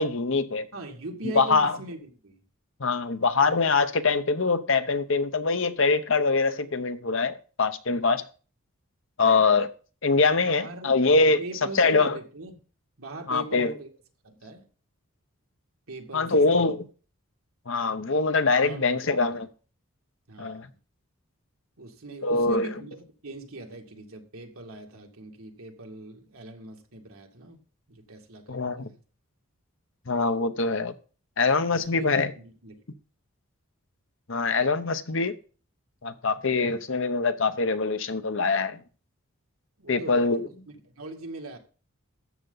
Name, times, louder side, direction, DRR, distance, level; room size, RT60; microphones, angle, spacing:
voice 1, 0.0-0.7 1.2-1.7 2.8-8.2 9.2-9.7 10.0-11.4 11.7-12.2 13.3-13.7 16.1-16.9 17.7-19.5 20.4-20.7 22.2-22.7 28.5-28.9 30.1-30.9 31.4-32.3 34.3-35.3 36.0-38.8 39.9-40.4, left 4 dB, 60° left, 0.8 m, -23 dB
voice 2, 0.7-2.4 10.4-10.9 11.4-12.6 13.0-13.9 14.2-14.7 15.9-16.8 18.5-19.0 19.3-19.4 20.3-20.8 21.8-27.6 27.9-29.0 31.7-32.8 39.8-40.5 40.8-41.6, right 2 dB, 75° right, 2.1 m, -41 dB
13.5 x 7.9 x 4.0 m
head